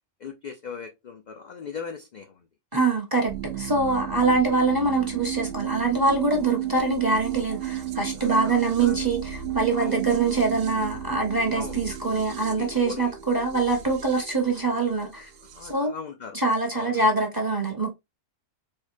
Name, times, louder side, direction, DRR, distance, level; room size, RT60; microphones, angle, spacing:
voice 1, 0.2-2.5 8.1-9.0 9.7-10.0 11.5-11.8 12.6-13.1 15.4-16.4 16.7-17.0, left 5 dB, 70° left, 0.4 m, -39 dB
voice 2, 2.7-3.3 3.6-15.3 15.7-15.9 16.3-17.9, right 3 dB, 20° right, 0.7 m, -24 dB
sound 1, 3.3-15.7, right 12 dB, 70° right, 0.9 m, -33 dB
4.4 x 2.2 x 2.5 m
omnidirectional pair, 1.3 m